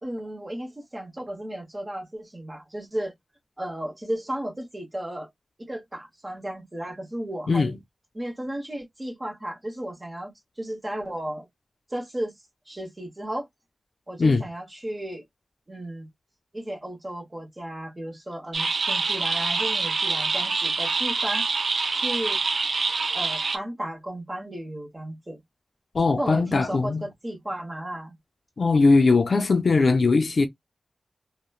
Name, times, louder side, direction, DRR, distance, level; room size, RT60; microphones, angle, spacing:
voice 1, 0.0-3.1 3.6-5.3 5.6-7.8 8.1-10.3 10.6-11.5 11.9-12.3 12.7-13.5 14.1-15.2 15.7-16.1 16.5-21.5 21.9-22.4 23.1-25.4 26.2-28.2, right 1 dB, 25° right, 1.1 m, -34 dB
sound 1, 18.5-23.6, right 4 dB, 60° right, 0.4 m, -25 dB
voice 2, 25.9-27.1 28.6-30.5, left 3 dB, 60° left, 0.5 m, -20 dB
3.1 x 2.1 x 2.3 m
wide cardioid pair, 90°, 0 cm